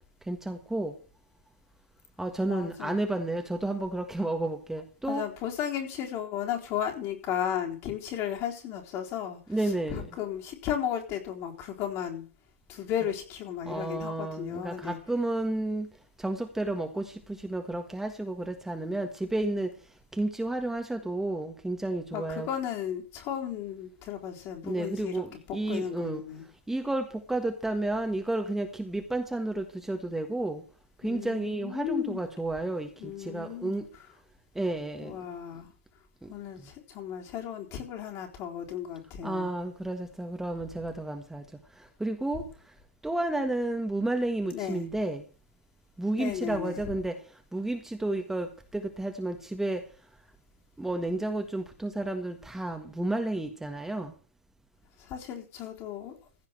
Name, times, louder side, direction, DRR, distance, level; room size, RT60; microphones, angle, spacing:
voice 1, 0.3-0.9 2.2-5.2 9.5-10.1 13.6-15.9 16.2-19.7 20.1-22.5 24.6-26.2 26.7-30.6 31.0-33.8 34.5-35.1 36.2-36.3 39.2-41.4 42.0-42.4 43.0-45.2 46.0-47.2 47.5-49.8 50.8-54.1, right 2 dB, 5° right, 1.6 m, -31 dB
voice 2, 2.5-2.9 5.0-9.4 9.9-12.2 12.7-15.0 22.1-26.4 31.0-32.3 33.0-33.8 35.0-35.7 36.3-39.5 44.5-44.8 46.2-46.8 55.0-56.2, left 9 dB, 40° left, 3.9 m, -34 dB
15.5 x 5.6 x 7.7 m
hypercardioid pair, 110°, 7 cm